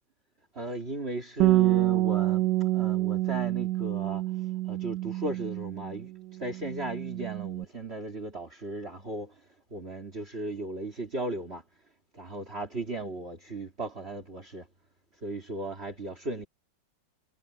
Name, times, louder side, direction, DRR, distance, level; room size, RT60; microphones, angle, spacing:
voice 1, 0.5-4.2 4.7-6.1 6.4-9.3 9.7-11.6 12.1-14.7 15.2-16.5, right 2 dB, 35° right, 2.8 m, -36 dB
Bass guitar, 1.4-6.1 6.4-7.7, right 16 dB, 80° right, 1.3 m, -27 dB
omnidirectional pair, 1.9 m